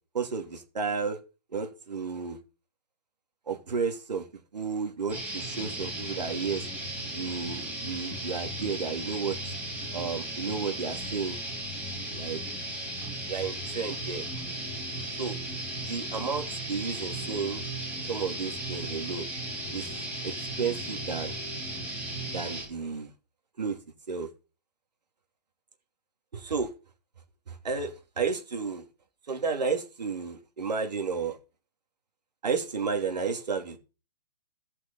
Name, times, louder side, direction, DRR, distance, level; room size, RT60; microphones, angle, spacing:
voice 1, 0.1-1.2 1.5-2.4 3.5-4.3 4.5-6.7 7.1-9.4 9.9-11.4 12.1-12.4 13.3-14.3 15.2-15.4 15.8-17.6 18.1-19.3 19.7-19.9 20.2-21.3 22.3-23.1 23.6-23.8 24.1-24.3 26.3-26.7 27.5-28.9 29.3-31.4 32.4-33.8, right 5 dB, 90° right, 2.8 m, -32 dB
sound 1, 5.1-22.6, right 1 dB, 10° right, 3.2 m, -36 dB
15.0 x 6.0 x 5.5 m
hypercardioid pair, 160°, 21 cm